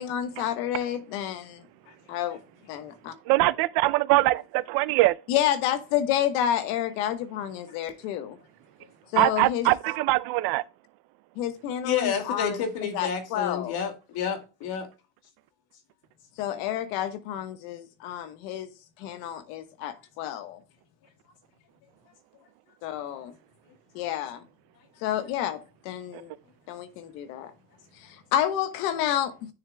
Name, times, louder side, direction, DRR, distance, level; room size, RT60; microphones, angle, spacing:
voice 1, 0.0-1.6 2.1-2.4 2.7-3.1 5.3-8.4 9.1-9.7 11.4-12.6 12.9-13.8 16.4-18.7 19.0-20.6 22.8-23.3 23.9-24.4 25.0-25.6 25.8-26.3 26.7-27.5 28.0-29.3, left 11 dB, 85° left, 1.3 m, -29 dB
voice 2, 3.3-5.1 9.2-10.6, right 19 dB, 60° right, 0.5 m, -22 dB
voice 3, 11.8-14.9, left 7 dB, 60° left, 2.3 m, -29 dB
9.8 x 6.8 x 2.2 m
cardioid pair, 145°, 42 cm